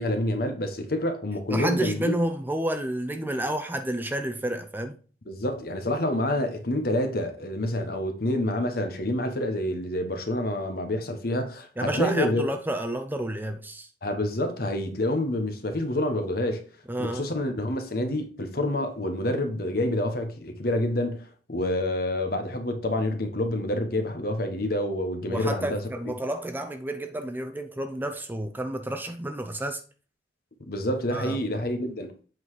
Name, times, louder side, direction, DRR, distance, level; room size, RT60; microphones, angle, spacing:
voice 1, 0.0-2.2 5.3-12.5 14.0-16.6 17.0-25.8 30.7-32.1, left 1 dB, 55° left, 1.2 m, -28 dB
voice 2, 1.5-5.0 11.8-13.9 16.9-17.3 25.3-29.8 31.1-31.4, right 1 dB, 10° right, 0.5 m, -30 dB
7.8 x 4.1 x 4.8 m
head